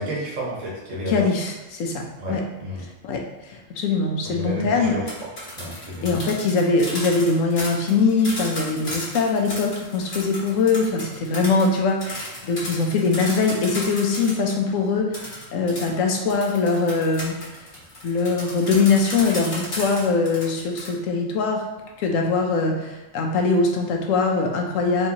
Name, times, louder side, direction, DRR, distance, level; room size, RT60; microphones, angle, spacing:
voice 1, 0.0-1.2 2.2-2.8 4.2-5.3 5.6-6.2, equal, 75° right, -6 dB, 1.7 m, -31 dB
voice 2, 1.1-2.0 2.3-2.4 3.0-3.2 3.5-5.0 6.0-17.4 18.0-21.6 22.0-25.1, left 4 dB, 90° left, 2 dB, 1.1 m, -22 dB
sound 1, 4.9-14.5 15.1-20.9, left 1 dB, 65° left, 1.8 m, -34 dB
4.3 x 3.4 x 2.8 m, 1.1 s
omnidirectional pair, 1.3 m